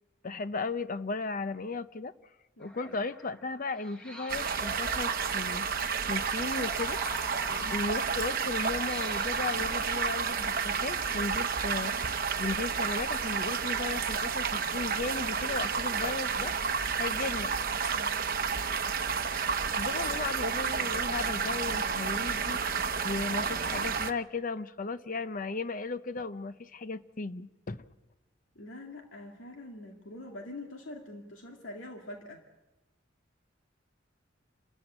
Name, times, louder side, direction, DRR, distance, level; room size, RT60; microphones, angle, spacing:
voice 1, 0.2-2.1 2.6-5.7 6.1-7.0 7.7-11.9 12.4-16.5 17.0-17.5 19.8-22.6 23.0-27.8, left 3 dB, 45° left, 13 dB, 0.8 m, -35 dB
voice 2, 2.6-3.0 7.5-7.7 17.9-18.2 28.6-32.4, left 1 dB, 80° left, 1 dB, 2.3 m, -45 dB
sound 1, 2.6-11.2, left 1 dB, 5° left, 1.6 m, -47 dB
sound 2, 4.3-24.1, right 6 dB, 50° right, 0.8 m, -31 dB
28.5 x 14.0 x 8.8 m, 1.1 s
head